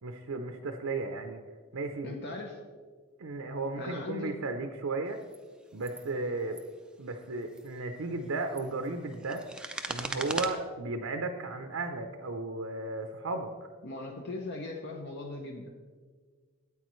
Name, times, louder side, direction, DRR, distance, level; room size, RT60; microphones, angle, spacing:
voice 1, 0.0-1.4 1.7-2.2 3.2-5.2 5.7-6.6 7.0-9.4 9.9-13.5, right 3 dB, 70° right, 5 dB, 0.6 m, -34 dB
voice 2, 2.0-2.6 3.8-4.4 13.8-15.7, left 2 dB, 50° left, 1 dB, 0.8 m, -39 dB
sound 1, 5.2-5.4 5.8-6.1 6.4-6.6 7.4-7.7 8.3-10.5, right 1 dB, 5° right, 0.4 m, -38 dB
13.0 x 8.7 x 3.1 m, 1.5 s
head